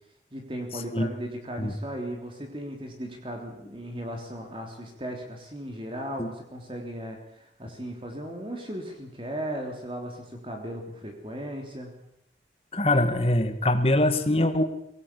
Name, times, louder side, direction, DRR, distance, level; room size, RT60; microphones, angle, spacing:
voice 1, 0.3-11.9, right 1 dB, 30° right, 2 dB, 3.3 m, -36 dB
voice 2, 12.7-14.6, left 1 dB, 35° left, 8 dB, 2.0 m, -23 dB
24.0 x 18.0 x 8.6 m, 0.79 s
head